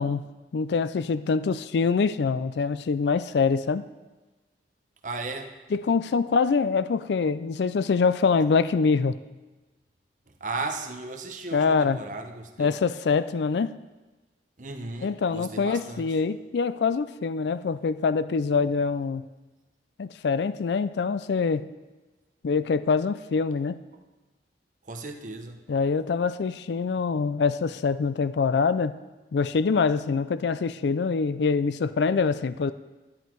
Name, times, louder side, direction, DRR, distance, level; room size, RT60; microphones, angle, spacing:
voice 1, 0.0-3.8 5.7-9.2 11.5-12.0 12.6-13.7 15.0-19.2 20.0-21.7 22.4-23.8 25.7-29.0 29.3-32.7, left 5 dB, 70° left, 14 dB, 0.4 m, -24 dB
voice 2, 5.0-5.5 10.3-12.7 14.6-16.2 24.9-25.6, right 3 dB, 45° right, 5 dB, 1.0 m, -35 dB
11.0 x 10.5 x 4.6 m, 1.2 s
head